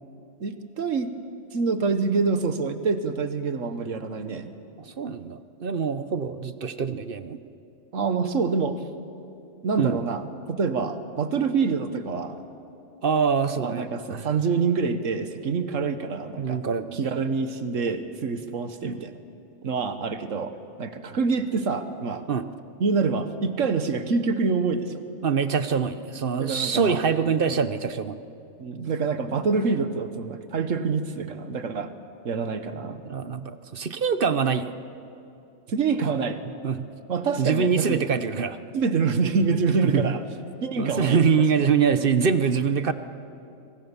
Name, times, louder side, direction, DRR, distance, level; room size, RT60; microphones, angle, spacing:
voice 1, 0.4-1.1 1.5-4.5 7.9-8.8 9.6-12.4 13.6-16.6 16.9-19.1 19.6-20.5 20.8-22.2 22.8-25.0 26.4-27.0 28.6-31.9 32.2-33.0 35.7-36.4 37.1-38.0 38.7-40.2 40.6-41.2, right 4 dB, 85° right, 9 dB, 1.6 m, -26 dB
voice 2, 5.0-7.4 9.8-10.0 13.0-14.3 16.4-17.0 18.8-19.0 22.3-22.4 25.2-28.2 33.0-34.7 36.6-36.9 37.4-38.6 39.8-40.2 40.8-42.9, right 6 dB, 50° right, 12 dB, 1.0 m, -24 dB
25.5 x 25.0 x 7.2 m, 2.7 s
omnidirectional pair, 1.3 m